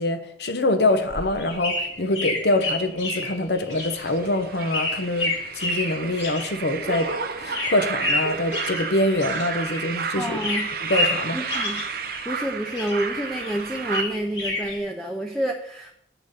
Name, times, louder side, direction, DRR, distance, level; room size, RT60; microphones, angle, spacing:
voice 1, 0.0-7.1 7.4-10.4 10.8-11.4, left 1 dB, 60° left, 8 dB, 1.1 m, -24 dB
sound 1, 0.9-9.9 10.2-12.4 12.7-14.8, left 2 dB, 90° left, 2.9 m, -30 dB
sound 2, 3.8-14.0, right 5 dB, 55° right, 0.8 m, -32 dB
voice 2, 10.1-10.7 11.3-11.8 12.2-16.0, right 1 dB, 5° left, 1 dB, 0.7 m, -28 dB
9.0 x 6.2 x 6.7 m, 0.75 s
head